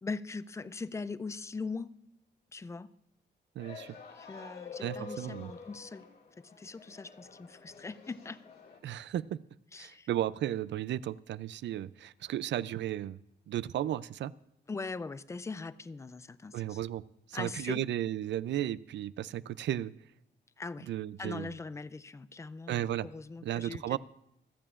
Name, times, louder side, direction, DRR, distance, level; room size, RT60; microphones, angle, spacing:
voice 1, 0.0-1.9 2.5-2.9 4.1-6.1 6.4-8.4 9.7-10.1 14.7-16.8 17.3-17.8 20.6-20.9 21.2-24.0, left 4 dB, 15° left, 16 dB, 0.3 m, -41 dB
sound 1, 3.6-8.8, left 4 dB, 60° left, 2.1 m, -48 dB
voice 2, 3.6-4.0 4.8-5.5 8.8-9.4 9.8-13.2 13.5-14.3 16.5-17.0 17.3-19.9 20.9-21.5 22.7-23.1 23.4-24.0, right 12 dB, 80° right, 18 dB, 0.4 m, -34 dB
26.0 x 8.9 x 2.5 m, 0.84 s
wide cardioid pair, 170°, 18 cm